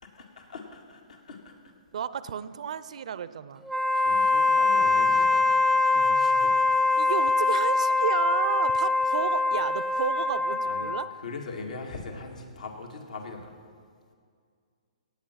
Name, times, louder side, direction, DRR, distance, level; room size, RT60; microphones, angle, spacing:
voice 1, 0.0-1.7 3.9-5.5 5.8-6.6 10.7-13.5, left 3 dB, 80° left, 2 dB, 2.1 m, -41 dB
voice 2, 1.9-3.7 7.0-11.1, right 8 dB, 65° right, 15 dB, 0.6 m, -32 dB
Wind instrument woodwind instrument, 3.6-11.1, left 3 dB, ahead, 0.5 m, -23 dB
17.0 x 8.5 x 5.8 m, 2.1 s
hypercardioid pair, 130°, 4 cm